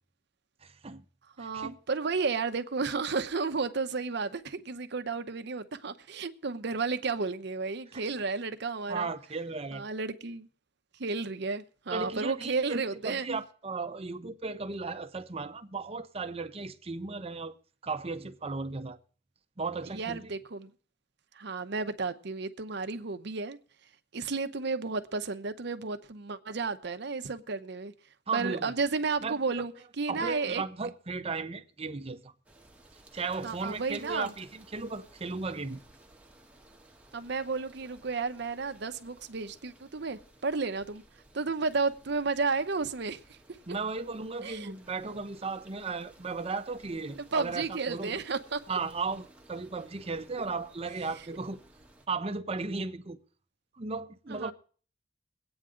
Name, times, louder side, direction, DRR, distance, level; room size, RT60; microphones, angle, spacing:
voice 1, 0.6-1.0 1.4-1.8 8.9-9.8 11.9-17.5 17.8-19.0 19.6-20.3 28.3-28.7 29.2-29.7 30.1-32.3 33.1-35.8 43.7-48.2 48.7-51.6 52.1-53.2 53.7-54.5, right 4 dB, 30° right, 0.8 m, -36 dB
voice 2, 1.4-9.1 9.7-10.5 11.0-13.3 19.9-20.7 21.3-23.6 24.1-27.9 28.3-30.6 33.4-34.3 37.1-41.0 41.3-43.4 44.4-44.7 47.3-48.8 54.3-54.5, right 4 dB, 60° right, 0.8 m, -32 dB
sound 1, 32.4-52.1, right 1 dB, 5° right, 1.2 m, -58 dB
22.5 x 8.8 x 3.8 m
head